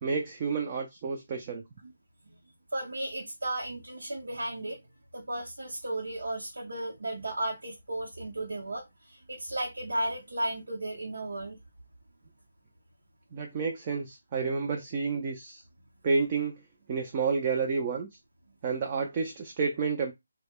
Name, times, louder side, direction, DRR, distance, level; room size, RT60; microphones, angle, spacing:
voice 1, 0.0-1.6 13.3-15.6 16.0-16.6 16.9-18.1 18.6-20.1, right 5 dB, 25° right, 0.4 m, -30 dB
voice 2, 2.7-4.8 5.1-11.6, right 1 dB, 80° right, 0.8 m, -34 dB
2.2 x 2.1 x 3.5 m
figure-of-eight pair, 165°, 0 cm